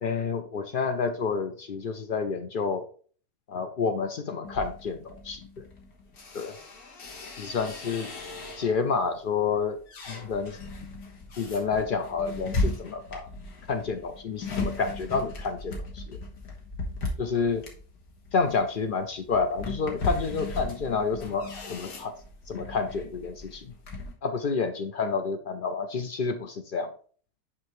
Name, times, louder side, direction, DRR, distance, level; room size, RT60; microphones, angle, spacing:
voice 1, 0.0-2.8 3.5-5.6 6.3-6.6 7.4-8.1 8.6-9.8 10.1-10.6 11.4-13.3 13.7-16.2 17.2-17.7 18.3-22.1 22.5-23.7 24.2-26.9, left 5 dB, 65° left, 8 dB, 0.5 m, -29 dB
sound 1, 4.4-8.9 9.4-24.1, left 2 dB, 80° left, 1.9 m, -37 dB
6.1 x 5.7 x 3.1 m, 0.43 s
omnidirectional pair, 1.6 m